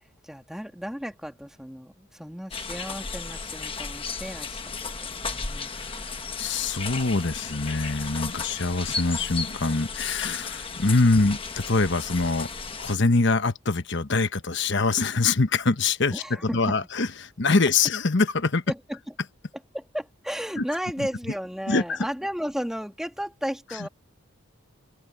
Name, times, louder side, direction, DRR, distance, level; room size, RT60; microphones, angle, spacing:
voice 1, 0.2-4.6 5.0-5.7 16.1-16.8 18.7-19.0 19.7-23.9, equal, ahead, 2.2 m, -34 dB
sound 1, 2.5-13.0, left 4 dB, 25° left, 1.2 m, -34 dB
voice 2, 6.4-12.5 12.8-16.2 16.5-18.6 20.6-20.7 21.0-21.1 21.7-22.0 23.8-23.9, left 3 dB, 55° left, 1.1 m, -24 dB
head